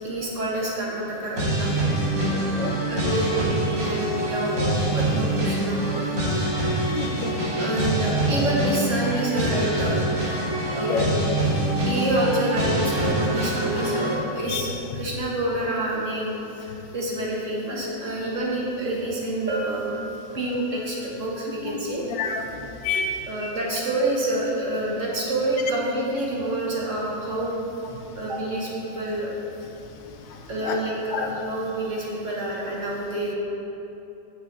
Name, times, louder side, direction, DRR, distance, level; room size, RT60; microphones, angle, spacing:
voice 1, 0.0-1.7 2.9-6.1 7.6-10.0 10.7-11.2 11.9-20.0 20.3-22.0 23.2-27.5 28.1-29.3 30.5-33.3, right 1 dB, 50° right, -4 dB, 1.2 m, -27 dB
sound 1, 1.4-14.2, right 1 dB, 80° right, 2.2 m, -25 dB
voice 2, 2.3-2.7 6.8-7.3 10.9-11.1 14.5-14.6 21.6-21.7 22.2-22.4 22.8-23.2 30.3-30.4 30.6-30.8 31.1-31.3, left 5 dB, 80° left, 3 dB, 1.4 m, -28 dB
Bell, 19.5-21.1, right 3 dB, 10° right, 0.6 m, -33 dB
8.0 x 6.7 x 3.8 m, 2.9 s
omnidirectional pair, 2.0 m